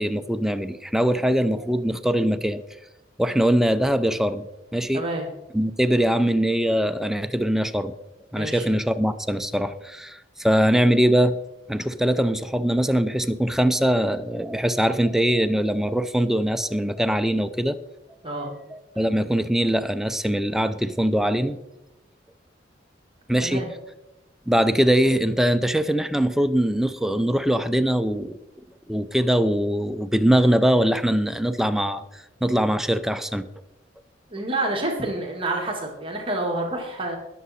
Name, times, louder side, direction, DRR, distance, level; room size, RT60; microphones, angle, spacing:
voice 1, 0.0-2.6 3.2-4.5 4.7-5.0 5.5-7.9 8.3-11.3 11.7-17.8 18.7-21.6 23.3-23.6 24.5-28.4 28.9-33.5, equal, ahead, 10 dB, 0.5 m, -22 dB
voice 2, 4.9-5.3 8.3-8.6 18.2-18.5 23.4-23.7 34.3-37.2, right 2 dB, 30° right, 0 dB, 1.9 m, -28 dB
20.0 x 7.1 x 4.2 m, 0.92 s
head